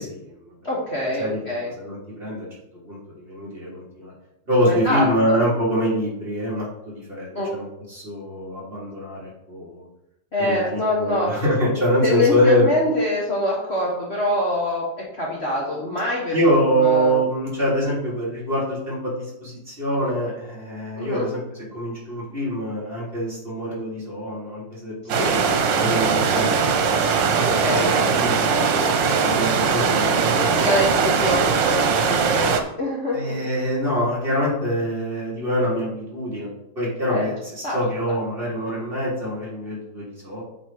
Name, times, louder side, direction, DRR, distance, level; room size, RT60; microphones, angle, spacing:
voice 1, 0.0-0.5 1.2-2.5 2.8-4.1 4.5-9.9 10.4-12.7 16.3-21.4 21.7-25.4 25.7-27.4 27.9-30.4 33.1-36.5 36.7-40.4, equal, 30° right, -7 dB, 3.2 m, -25 dB
voice 2, 0.6-1.7 4.6-5.4 7.3-7.5 10.3-11.3 12.0-14.8 15.1-16.4 16.8-17.2 21.0-21.3 25.1-25.4 27.3-28.1 30.0-30.2 30.5-33.4 37.1-37.2 37.6-37.8, left 1 dB, 40° left, -4 dB, 1.5 m, -24 dB
sound 1, 25.1-32.6, right 5 dB, 90° right, 1.6 m, -20 dB
8.6 x 4.3 x 4.7 m, 0.85 s
omnidirectional pair, 1.9 m